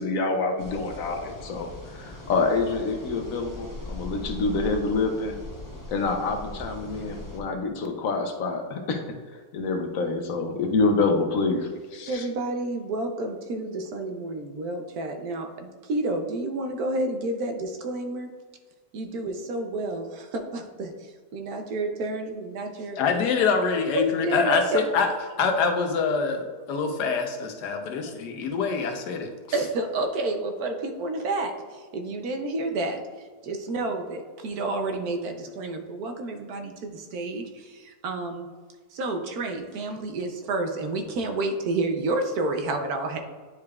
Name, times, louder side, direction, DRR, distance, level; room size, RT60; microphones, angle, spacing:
voice 1, 0.0-5.4 5.9-9.1 9.5-12.2, left 3 dB, 65° left, 5 dB, 1.0 m, -27 dB
sound 1, 0.6-7.4, left 2 dB, 20° left, 0.5 m, -40 dB
voice 2, 12.1-18.3 18.9-23.0 24.2-24.9 27.7-27.8 29.5-33.0 33.4-38.5 38.9-43.2, right 2 dB, 70° right, 5 dB, 1.2 m, -30 dB
voice 3, 23.0-25.1 25.4-29.3, left 5 dB, 90° left, 5 dB, 1.4 m, -25 dB
9.3 x 4.9 x 2.3 m, 1.5 s
omnidirectional pair, 1.7 m